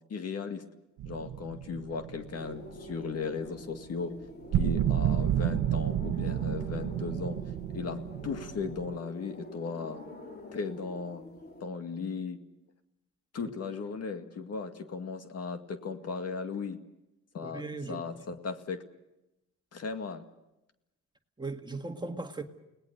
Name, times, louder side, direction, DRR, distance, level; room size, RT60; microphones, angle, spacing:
voice 1, 0.1-0.6 1.1-4.1 4.6-7.4 7.7-10.0 10.5-11.2 11.6-12.4 13.3-16.8 17.3-18.8 19.7-20.2, left 5 dB, 55° left, 2.1 m, -36 dB
sound 1, 1.0-2.9 4.5-9.0, right 11 dB, 75° right, 1.0 m, -30 dB
sound 2, 2.3-11.6, left 1 dB, 30° left, 4.5 m, -46 dB
voice 2, 17.4-18.0 21.4-22.4, right 3 dB, 15° right, 1.8 m, -38 dB
30.0 x 19.0 x 6.8 m
cardioid pair, 90°, 30 cm